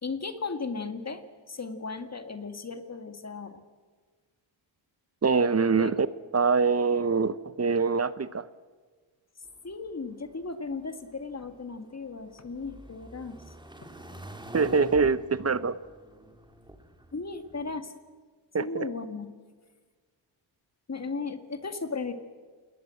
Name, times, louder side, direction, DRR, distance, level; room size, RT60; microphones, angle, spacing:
voice 1, 0.0-3.6 5.8-5.9 9.6-13.5 13.8-13.9 17.1-17.9 18.6-19.3 20.9-22.1, left 4 dB, 35° left, 8 dB, 2.1 m, -36 dB
voice 2, 5.2-6.1 6.3-8.5 14.5-15.8 18.5-18.9, right 5 dB, 30° right, 15 dB, 0.9 m, -24 dB
sound 1, 9.5-17.8, right 1 dB, 10° right, 2.2 m, -47 dB
28.5 x 20.0 x 7.9 m, 1.5 s
cardioid pair, 90°, 47 cm